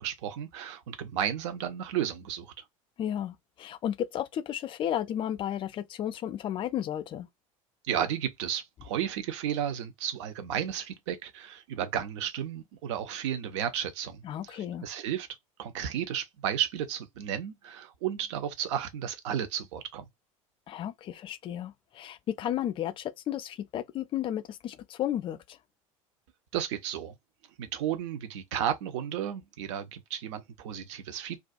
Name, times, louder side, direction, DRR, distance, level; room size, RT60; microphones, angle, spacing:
voice 1, 0.0-2.5 7.8-15.3 15.6-20.1 26.5-27.2 27.6-31.4, right 9 dB, 55° right, 0.6 m, -33 dB
voice 2, 3.0-7.3 14.2-14.9 20.7-25.6, left 11 dB, 30° left, 0.4 m, -33 dB
2.4 x 2.2 x 2.5 m
figure-of-eight pair, 75°, 18 cm